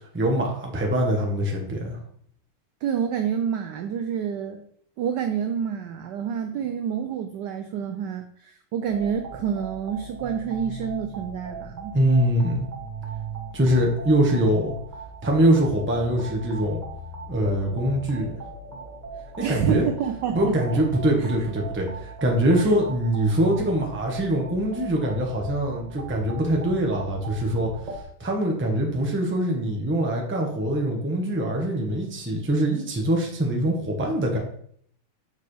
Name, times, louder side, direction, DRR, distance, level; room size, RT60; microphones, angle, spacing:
voice 1, 0.1-2.0 11.9-12.7 13.5-14.8 15.2-16.8 17.3-18.3 19.5-19.9 20.3-27.7 28.2-34.4, right 1 dB, 10° right, 0 dB, 0.6 m, -23 dB
voice 2, 2.8-4.7 5.0-11.9 19.4-20.8 21.2-21.3 22.6-22.8, right 8 dB, 80° right, 7 dB, 0.9 m, -28 dB
sound 1, 8.8-28.0, right 3 dB, 30° right, 0.9 m, -38 dB
6.5 x 5.2 x 3.3 m, 0.63 s
omnidirectional pair, 2.4 m